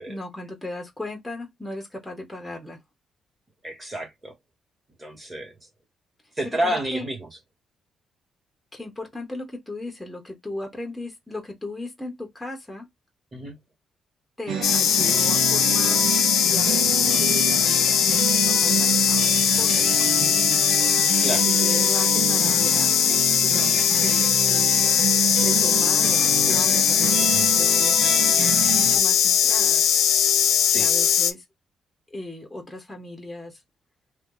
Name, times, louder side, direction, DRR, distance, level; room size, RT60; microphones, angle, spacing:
voice 1, 0.0-2.8 6.4-7.1 8.7-12.9 14.4-16.0 16.5-20.6 21.3-22.9 23.4-24.9 25.3-28.0 28.7-30.0 30.7-31.4 32.1-33.6, left 2 dB, 5° left, 0.9 m, -37 dB
voice 2, 3.6-4.3 5.0-5.5 6.4-7.3 13.3-13.6 21.2-21.5 27.3-27.5 30.7-30.9, right 1 dB, 20° right, 1.6 m, -30 dB
sound 1, 14.5-29.0, right 9 dB, 75° right, 0.6 m, -28 dB
sound 2, 14.6-31.3, left 9 dB, 75° left, 0.5 m, -20 dB
2.8 x 2.3 x 3.7 m
cardioid pair, 150°, 0 cm